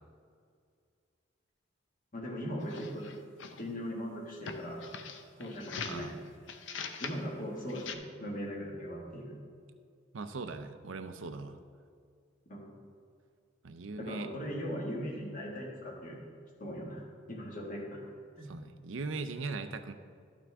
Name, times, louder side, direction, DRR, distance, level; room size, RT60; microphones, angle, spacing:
voice 1, 2.1-3.1 3.6-4.9 5.4-6.1 7.0-9.4 12.5-12.7 14.0-16.2 16.6-17.0 17.3-18.0 18.4-18.5, equal, 45° left, -2 dB, 1.8 m, -39 dB
sound 1, 2.6-3.7 4.4-6.1 6.5-7.2 7.7-8.0, left 6 dB, 70° left, 0.6 m, -42 dB
voice 2, 5.8-6.2 10.1-11.6 13.6-14.3 18.4-19.9, right 3 dB, 90° right, 9 dB, 0.6 m, -39 dB
12.0 x 5.9 x 3.5 m, 2.2 s
head